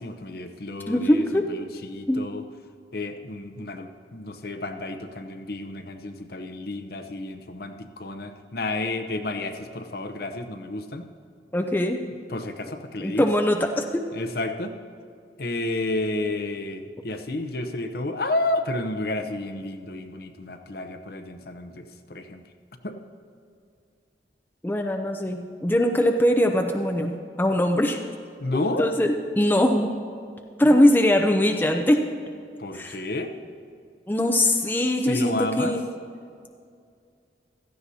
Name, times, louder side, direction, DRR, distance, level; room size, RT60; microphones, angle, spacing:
voice 1, 0.0-2.4 2.9-11.1 12.3-13.3 14.1-14.7 15.4-22.4 22.8-23.0 28.4-28.9 30.6-31.0 32.6-33.3 35.1-35.8, left 2 dB, 55° left, 7 dB, 0.8 m, -31 dB
voice 2, 0.9-1.4 2.1-2.2 11.5-12.0 13.0-14.0 24.6-28.0 28.5-29.9 30.6-32.0 32.7-33.0 34.1-35.8, left 1 dB, 10° left, 3 dB, 0.5 m, -21 dB
16.0 x 13.5 x 2.8 m, 2.3 s
head